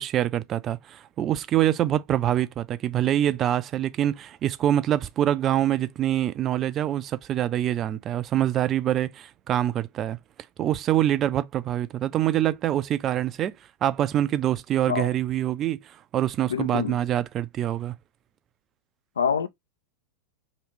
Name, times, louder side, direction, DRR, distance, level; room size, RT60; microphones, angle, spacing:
voice 1, 0.0-10.2 10.6-13.5 13.8-18.0, right 12 dB, 30° right, 0.3 m, -25 dB
voice 2, 16.5-17.0 19.2-19.5, left 7 dB, 70° left, 0.4 m, -26 dB
3.1 x 2.8 x 3.1 m
figure-of-eight pair, 90°, 0 cm